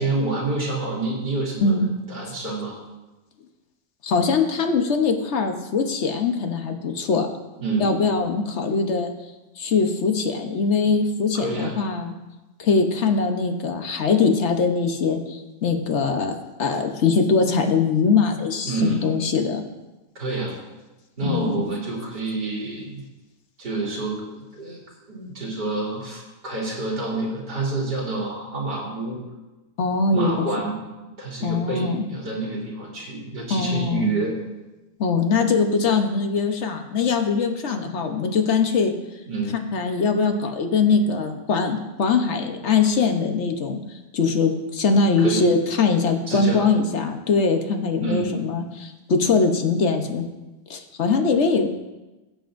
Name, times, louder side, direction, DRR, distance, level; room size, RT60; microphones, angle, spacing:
voice 1, 0.0-2.8 7.6-8.0 11.3-11.8 18.6-19.1 20.1-20.5 21.2-23.0 23.6-29.2 30.1-30.8 31.2-34.4 39.2-39.6 45.2-45.4 46.3-46.6 48.0-48.3, right 2 dB, 70° right, -4 dB, 3.4 m, -28 dB
voice 2, 4.0-7.3 7.8-9.1 9.6-12.1 12.6-16.3 16.6-19.6 21.2-21.6 29.8-30.5 31.4-32.1 33.5-34.1 35.0-38.9 39.7-43.8 44.1-50.2 50.7-51.7, left 4 dB, 50° left, 4 dB, 1.1 m, -22 dB
17.5 x 7.7 x 2.6 m, 1.1 s
omnidirectional pair, 1.8 m